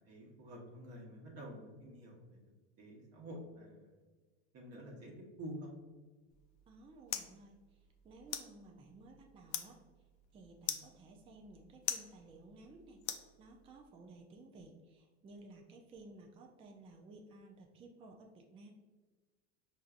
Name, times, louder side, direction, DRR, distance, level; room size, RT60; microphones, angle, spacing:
voice 1, 0.0-2.4 2.8-4.0 4.5-5.7, equal, 50° right, -2 dB, 1.0 m, -49 dB
sound 1, 6.3-13.9, left 10 dB, 80° left, 0.5 m, -45 dB
voice 2, 6.7-9.8 10.3-18.7, right 2 dB, 20° right, 1 dB, 0.3 m, -56 dB
4.4 x 2.6 x 2.4 m, 1.3 s
supercardioid pair, 115°, 33 cm